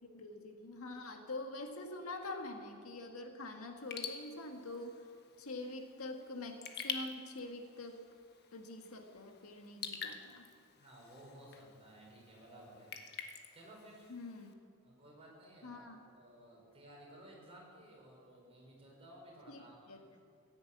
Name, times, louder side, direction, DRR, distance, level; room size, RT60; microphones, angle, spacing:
voice 1, 0.0-5.0 5.4-8.0 8.5-10.5 14.1-14.5 15.6-16.0 19.5-19.6 19.9-20.0, left 2 dB, 85° left, 4 dB, 1.7 m, -45 dB
Raindrop / Drip, 3.8-14.5, left 6 dB, 50° left, 1.2 m, -48 dB
voice 2, 10.8-13.1 13.5-14.1 14.8-20.0, right 1 dB, 30° right, -3 dB, 5.0 m, -56 dB
15.5 x 10.0 x 8.5 m, 2.2 s
head